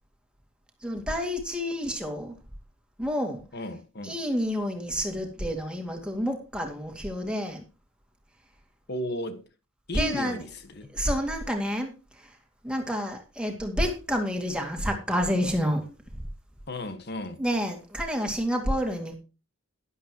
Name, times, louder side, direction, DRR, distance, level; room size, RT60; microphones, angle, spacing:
voice 1, 0.8-2.4 3.0-3.4 4.0-7.6 9.9-10.4 10.9-12.3 12.6-15.9 17.4-19.1, equal, 5° right, 2.3 m, -29 dB
voice 2, 3.5-4.2 8.9-9.4 9.9-10.9 16.7-17.4, left 1 dB, 50° left, 1.5 m, -34 dB
12.0 x 11.5 x 3.0 m
head